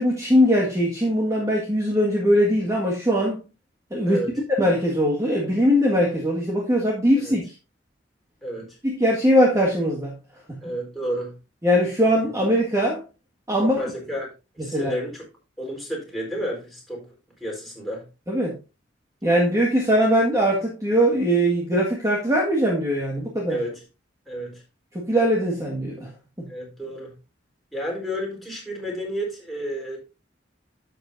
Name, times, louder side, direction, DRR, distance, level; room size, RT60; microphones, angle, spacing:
voice 1, 0.0-3.5 3.9-4.2 4.5-7.4 8.8-10.1 11.6-13.0 13.5-13.8 14.6-14.9 18.3-18.6 19.2-23.6 25.0-26.1, equal, 20° right, 1.8 m, -21 dB
voice 2, 8.4-8.8 10.6-11.3 12.0-12.1 13.8-15.2 15.6-17.1 17.4-18.1 23.5-23.8 24.3-24.6 26.5-27.1 27.7-30.0, equal, ahead, 4.4 m, -31 dB
11.0 x 7.9 x 2.7 m
head